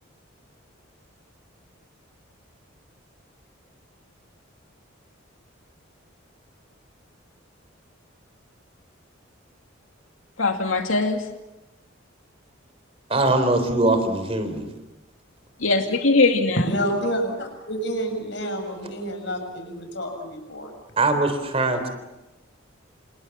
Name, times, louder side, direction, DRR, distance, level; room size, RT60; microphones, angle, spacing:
voice 1, 10.4-11.3 15.6-16.7, left 3 dB, 80° left, 2.4 m, -21 dB
voice 2, 13.1-14.7 21.0-21.9, right 2 dB, 30° right, 3.8 m, -21 dB
voice 3, 16.6-20.7, equal, 60° left, 7.6 m, -28 dB
29.0 x 28.0 x 7.3 m
head